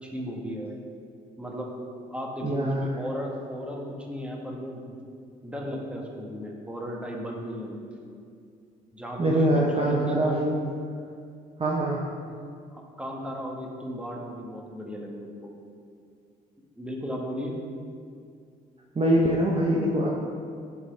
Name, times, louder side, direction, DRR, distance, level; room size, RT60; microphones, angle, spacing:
voice 1, 0.0-0.8 1.4-1.7 2.1-4.9 5.4-8.1 8.9-10.4 12.7-15.5 16.8-17.6, equal, 5° right, -1 dB, 1.6 m, -35 dB
voice 2, 2.4-2.9 9.2-10.6 11.6-12.1 18.9-20.1, right 1 dB, 30° right, -3 dB, 1.0 m, -23 dB
11.0 x 4.0 x 3.5 m, 2.3 s
hypercardioid pair, 55°, 20 cm